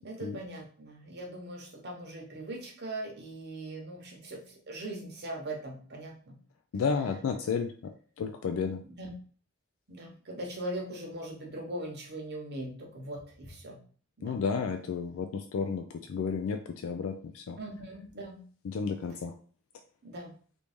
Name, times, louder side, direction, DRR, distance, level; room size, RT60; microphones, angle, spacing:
voice 1, 0.0-6.3 8.8-9.1 9.9-13.8 14.2-14.4 17.6-18.4 20.0-20.3, right 1 dB, 55° right, 0 dB, 1.0 m, -40 dB
voice 2, 6.7-8.8 14.2-17.6 18.6-19.3, left 5 dB, 85° left, 6 dB, 0.3 m, -32 dB
3.0 x 2.6 x 3.4 m, 0.44 s
head